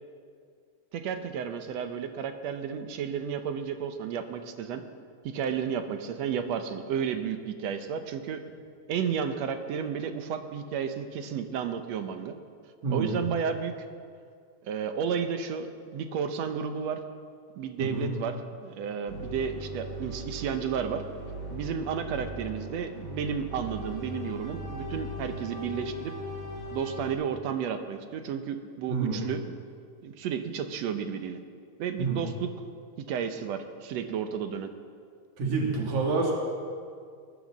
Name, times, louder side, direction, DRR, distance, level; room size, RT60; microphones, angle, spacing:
voice 1, 0.9-4.8 5.2-8.4 8.9-12.3 12.9-13.8 14.6-17.0 17.6-21.0 21.5-26.1 26.7-29.6 30.0-31.4 31.8-32.5 33.0-34.7, right 7 dB, 70° right, 8 dB, 1.9 m, -32 dB
voice 2, 12.8-13.2 17.8-18.1 28.9-29.2 32.0-32.2 35.4-36.3, right 4 dB, 90° right, -1 dB, 3.5 m, -27 dB
sound 1, 19.1-27.1, equal, 5° left, 3.7 m, -39 dB
19.5 x 9.4 x 7.3 m, 2.2 s
omnidirectional pair, 3.3 m